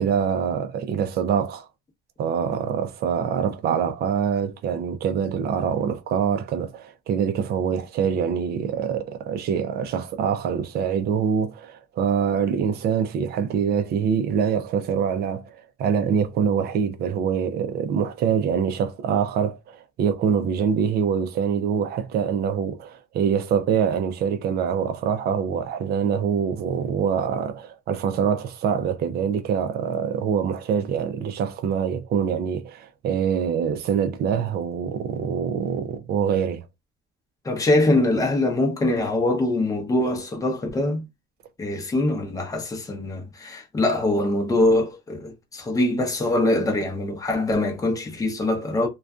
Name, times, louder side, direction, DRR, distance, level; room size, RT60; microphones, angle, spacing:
voice 1, 0.0-1.7 2.2-36.6, right 7 dB, 50° right, 0.5 m, -24 dB
voice 2, 37.4-41.0 41.6-48.9, left 2 dB, 15° left, 0.7 m, -23 dB
2.5 x 2.3 x 2.3 m
cardioid pair, 135°, 21 cm